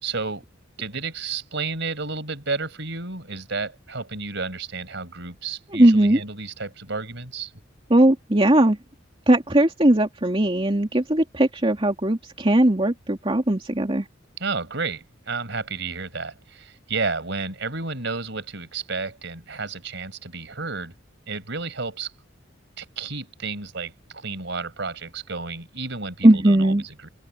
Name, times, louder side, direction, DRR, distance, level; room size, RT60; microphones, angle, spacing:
voice 1, 0.0-0.4 0.8-7.5 14.4-20.9 21.3-22.1 22.8-27.1, right 4 dB, 65° right, 5.1 m, -31 dB
voice 2, 5.7-6.2 7.9-8.8 9.3-14.0 26.2-26.8, right 1 dB, 30° right, 2.6 m, -18 dB
open air
head